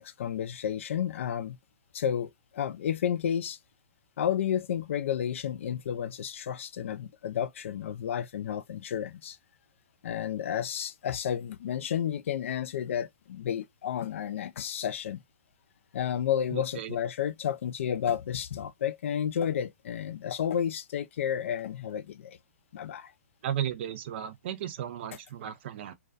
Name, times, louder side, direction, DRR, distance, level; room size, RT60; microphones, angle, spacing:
voice 1, 0.0-1.6 1.9-3.6 4.2-9.4 10.0-15.2 15.9-22.4 22.7-23.1, left 9 dB, 60° left, 0.3 m, -31 dB
voice 2, 16.5-17.0 23.4-25.9, right 10 dB, 50° right, 0.4 m, -35 dB
2.3 x 2.3 x 2.5 m
hypercardioid pair, 125°, 8 cm